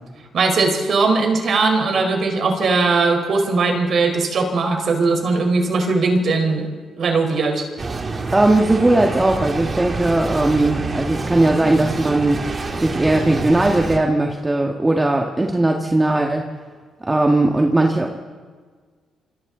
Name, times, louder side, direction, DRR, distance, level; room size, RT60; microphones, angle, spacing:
voice 1, 0.3-6.6 7.0-7.6, right 3 dB, 55° right, 3 dB, 4.4 m, -19 dB
sound 1, 7.8-14.0, right 3 dB, 35° right, 2.4 m, -27 dB
voice 2, 8.3-12.4 12.8-16.5 17.1-18.1, right 2 dB, 15° right, 1 dB, 1.9 m, -18 dB
27.5 x 25.5 x 4.0 m, 1.5 s
cardioid pair, 90°, 0 cm